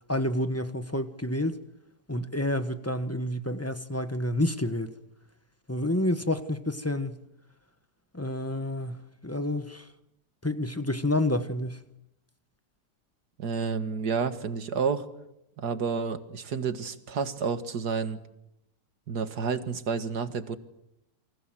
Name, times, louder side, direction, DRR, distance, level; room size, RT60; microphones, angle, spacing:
voice 1, 0.1-1.6 2.1-4.9 5.7-7.2 8.1-9.9 10.4-11.8, left 1 dB, 10° left, 1.1 m, -29 dB
voice 2, 13.4-15.1 15.6-18.2 19.1-20.6, right 5 dB, 65° right, 2.2 m, -30 dB
29.0 x 24.5 x 7.7 m
omnidirectional pair, 1.9 m